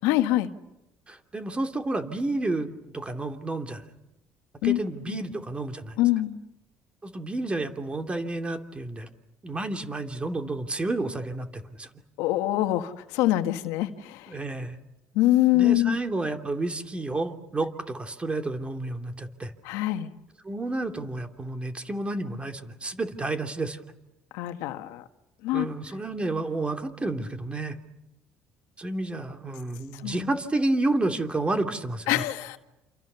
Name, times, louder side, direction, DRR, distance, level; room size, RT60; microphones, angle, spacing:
voice 1, 0.0-0.5 4.6-4.8 5.1-5.2 6.0-6.4 12.2-14.4 15.1-16.0 19.6-20.1 24.3-25.0 25.4-25.7 29.9-30.3 32.1-32.6, left 15 dB, 90° left, 8 dB, 1.6 m, -24 dB
voice 2, 1.1-3.8 4.6-5.9 7.0-9.1 9.4-11.9 14.3-14.8 15.5-19.5 20.4-23.8 25.5-27.8 28.8-32.2, right 2 dB, 20° right, 5 dB, 2.9 m, -30 dB
28.5 x 28.0 x 7.0 m, 0.93 s
cardioid pair, 95°, 5 cm